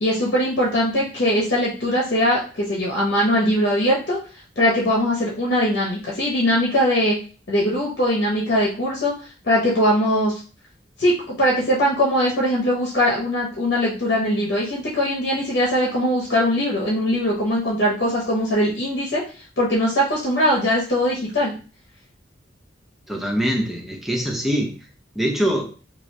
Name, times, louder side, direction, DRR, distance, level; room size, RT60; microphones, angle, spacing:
voice 1, 0.0-4.2 4.6-7.2 7.5-9.1 9.4-10.3 11.0-19.2 19.6-21.5, equal, 60° left, -4 dB, 0.8 m, -21 dB
voice 2, 23.1-24.7 25.2-25.6, equal, ahead, 1 dB, 0.6 m, -23 dB
2.9 x 2.5 x 3.1 m, 0.37 s
head